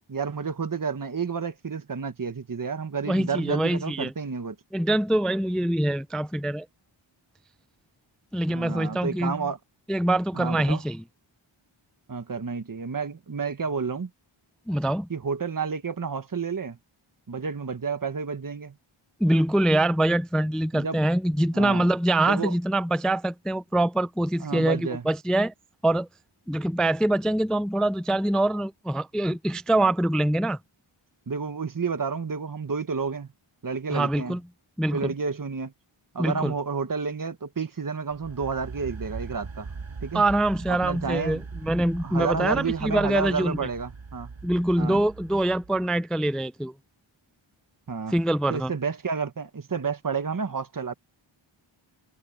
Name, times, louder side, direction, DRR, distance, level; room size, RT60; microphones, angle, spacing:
voice 1, 0.1-4.6 8.5-9.6 10.3-10.8 12.1-14.1 15.1-16.8 17.3-18.7 20.7-21.0 21.5-21.9 22.3-22.5 24.4-25.0 31.3-33.3 33.6-34.4 34.9-35.7 36.1-39.7 40.0-40.2 40.7-41.4 42.0-44.3 44.8-45.0 47.9-48.1 48.5-50.9, right 5 dB, 40° right, 1.3 m, -30 dB
voice 2, 3.1-4.1 4.7-6.7 8.3-9.5 9.9-11.0 14.7-15.1 19.2-25.5 25.8-26.1 26.5-30.6 33.9-34.4 34.8-35.1 36.2-36.5 40.1-43.7 44.4-46.7 48.1-48.7, right 1 dB, ahead, 0.4 m, -24 dB
sound 1, 38.1-45.9, right 4 dB, 65° right, 8.0 m, -40 dB
wide cardioid pair, 90°, 49 cm